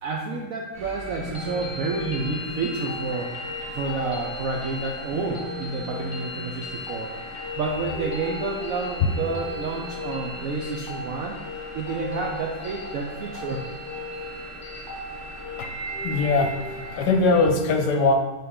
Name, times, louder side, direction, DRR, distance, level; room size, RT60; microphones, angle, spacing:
voice 1, 0.0-7.1 7.6-11.4 11.7-13.6, right 3 dB, 75° right, 0 dB, 0.8 m, -30 dB
sound 1, 0.7-17.5, right 1 dB, 35° right, 1.8 m, -42 dB
sound 2, 1.1-17.1, left 2 dB, 20° left, 0.9 m, -36 dB
voice 2, 16.0-16.6 16.9-18.1, left 3 dB, 70° left, 4 dB, 1.1 m, -21 dB
6.6 x 3.9 x 3.6 m, 1.2 s
omnidirectional pair, 1.9 m